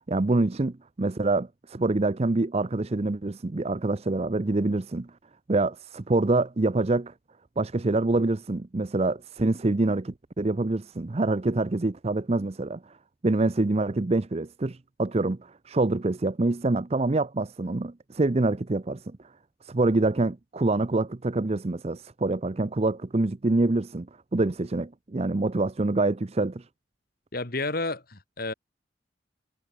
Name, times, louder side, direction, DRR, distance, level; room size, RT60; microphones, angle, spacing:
voice 1, 0.1-5.1 5.5-7.1 7.6-12.8 13.2-19.0 19.7-24.1 24.3-26.6, right 2 dB, 35° right, 0.6 m, -26 dB
voice 2, 27.3-28.5, left 3 dB, 50° left, 2.4 m, -31 dB
head